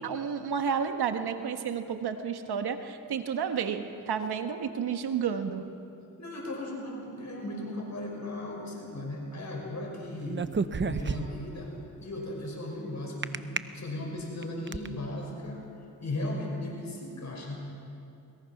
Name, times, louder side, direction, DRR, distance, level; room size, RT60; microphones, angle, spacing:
voice 1, 0.0-5.7, right 7 dB, 75° right, 7 dB, 1.4 m, -31 dB
voice 2, 6.2-10.5 10.8-11.7 12.0-15.6 16.0-17.7, left 1 dB, 45° left, -1 dB, 5.8 m, -36 dB
sound 1, 10.3-11.5 13.2-13.6 14.2-14.9, right 5 dB, 30° right, 0.7 m, -30 dB
21.5 x 21.0 x 6.0 m, 2.6 s
cardioid pair, 70°, 39 cm